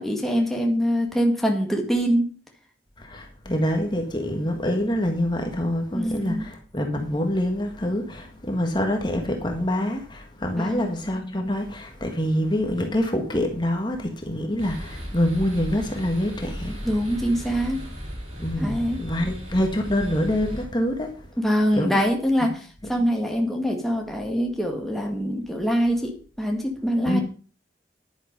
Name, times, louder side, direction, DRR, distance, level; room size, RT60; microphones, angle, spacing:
voice 1, 0.0-2.3 5.9-6.5 10.6-10.9 16.8-17.9 18.6-19.0 21.4-27.2, equal, ahead, 1.9 m, -24 dB
voice 2, 3.0-16.8 18.4-21.1 21.7-22.0 27.0-27.2, left 1 dB, 25° left, 1.7 m, -26 dB
sound 1, 14.6-20.6, equal, 40° right, 7.4 m, -36 dB
11.0 x 9.6 x 5.3 m
head